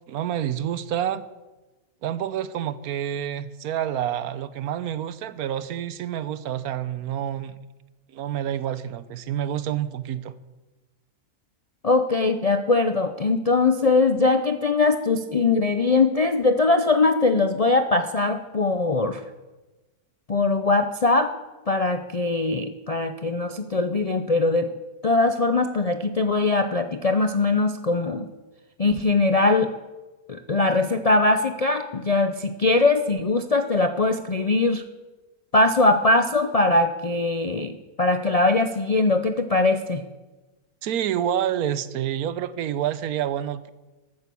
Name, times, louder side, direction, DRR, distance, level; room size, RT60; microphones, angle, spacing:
voice 1, 0.1-1.2 2.0-7.5 8.1-10.3 40.8-43.7, right 10 dB, 80° right, 15 dB, 1.2 m, -28 dB
voice 2, 11.8-19.2 20.3-21.3 21.7-24.7 25.0-28.3 28.8-29.7 30.3-34.8 35.5-40.0, left 3 dB, 50° left, 7 dB, 0.4 m, -21 dB
13.0 x 9.2 x 6.9 m, 1.1 s
omnidirectional pair, 1.6 m